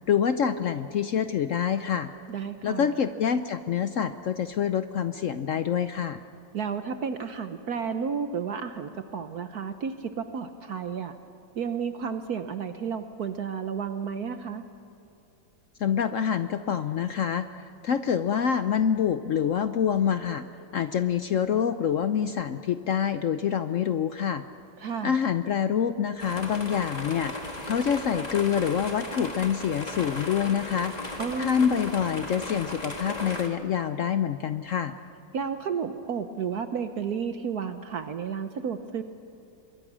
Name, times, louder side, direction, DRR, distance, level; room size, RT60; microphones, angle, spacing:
voice 1, 0.1-2.1 2.6-6.2 15.8-17.5 17.8-20.5 20.7-24.4 25.0-27.3 27.6-30.9 31.4-34.9, left 8 dB, 75° left, 10 dB, 0.7 m, -26 dB
voice 2, 2.3-2.9 6.5-11.2 11.5-14.6 24.8-25.2 31.2-31.6 35.3-39.0, right 6 dB, 60° right, 8 dB, 1.2 m, -32 dB
sound 1, 26.2-33.5, left 2 dB, 20° left, 1.8 m, -36 dB
26.5 x 23.0 x 6.2 m, 2.9 s
omnidirectional pair, 2.1 m